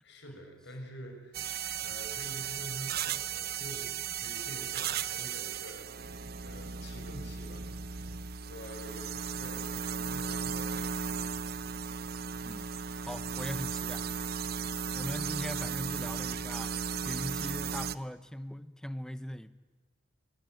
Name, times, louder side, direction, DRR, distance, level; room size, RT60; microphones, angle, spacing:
voice 1, 0.0-5.9 6.4-11.7, equal, 60° left, 6.1 m, -47 dB
sound 1, 1.3-18.0, right 7 dB, 50° right, 0.8 m, -36 dB
voice 2, 13.0-14.1 14.9-19.5, equal, 5° left, 0.9 m, -40 dB
26.5 x 22.0 x 9.4 m
head